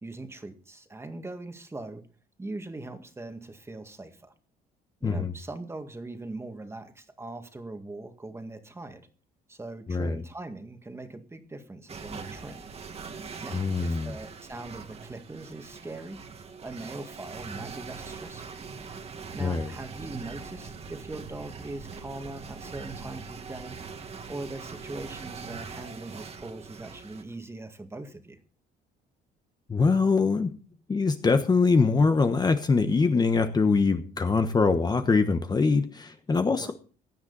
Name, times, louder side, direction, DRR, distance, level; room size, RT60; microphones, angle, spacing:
voice 1, 0.0-2.0 2.4-4.3 5.0-9.0 9.5-12.7 13.4-16.2 16.6-18.6 19.3-23.8 24.3-28.4 36.4-36.7, right 2 dB, 15° right, 7 dB, 1.9 m, -41 dB
voice 2, 9.9-10.2 13.5-14.1 19.4-19.7 29.7-30.5 30.9-36.7, left 4 dB, 25° left, 8 dB, 1.1 m, -23 dB
sound 1, 11.9-27.2, right 5 dB, 35° right, 1.9 m, -42 dB
16.5 x 10.5 x 4.1 m, 0.38 s
cardioid pair, 110°, 17 cm